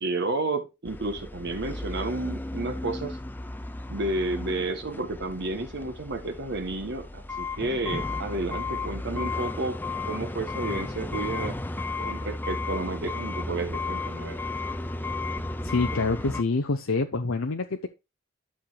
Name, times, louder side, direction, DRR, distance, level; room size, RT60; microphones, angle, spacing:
voice 1, 0.0-3.2 3.9-9.8 10.0-11.6 12.0-14.4, right 2 dB, 55° right, 1.3 m, -31 dB
sound 1, 0.9-16.4, left 2 dB, 10° left, 0.5 m, -34 dB
voice 2, 15.6-17.9, left 3 dB, 80° left, 0.8 m, -26 dB
12.0 x 6.6 x 2.4 m
head